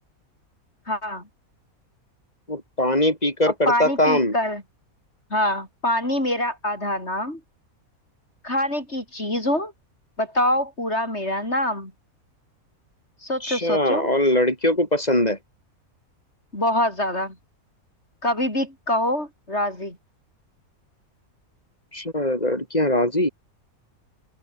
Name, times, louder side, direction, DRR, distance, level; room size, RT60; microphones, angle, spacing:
voice 1, 0.9-1.2 3.7-4.6 5.3-7.4 8.4-9.7 10.2-11.9 13.2-14.1 16.5-17.3 18.2-20.0, left 1 dB, 50° left, 8.2 m, -25 dB
voice 2, 2.5-4.3 13.4-15.4 21.9-23.3, left 1 dB, 25° left, 6.8 m, -21 dB
open air
omnidirectional pair, 1.5 m